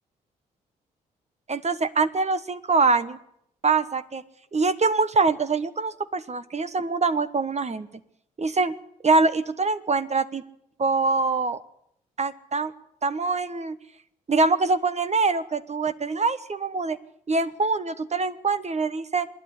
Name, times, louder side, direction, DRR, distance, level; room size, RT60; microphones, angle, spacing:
voice 1, 1.5-3.2 3.6-4.2 4.5-7.9 8.4-8.8 9.0-10.4 10.8-11.6 12.2-12.7 13.0-13.8 14.3-17.0 17.3-19.3, right 3 dB, 35° right, 12 dB, 1.2 m, -24 dB
25.5 x 10.5 x 9.6 m, 0.73 s
hypercardioid pair, 40°, 19 cm